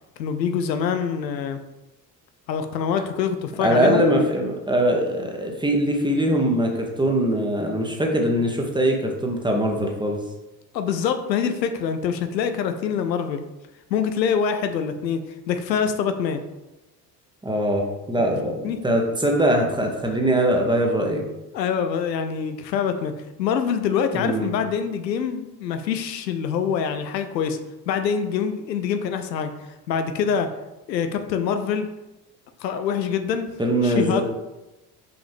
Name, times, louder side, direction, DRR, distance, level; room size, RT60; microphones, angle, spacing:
voice 1, 0.2-1.6 2.5-4.0 10.7-13.4 13.9-15.2 15.5-16.4 18.6-18.8 21.5-23.1 23.4-27.6 27.9-29.5 29.9-30.5 30.9-31.9 32.6-33.5 33.8-34.2, left 7 dB, 80° left, 8 dB, 0.7 m, -25 dB
voice 2, 3.6-10.2 17.4-21.2 24.1-24.5 33.6-34.2, right 1 dB, 10° right, 1 dB, 1.5 m, -22 dB
5.8 x 5.1 x 3.6 m, 1.0 s
figure-of-eight pair, 60°, 50 cm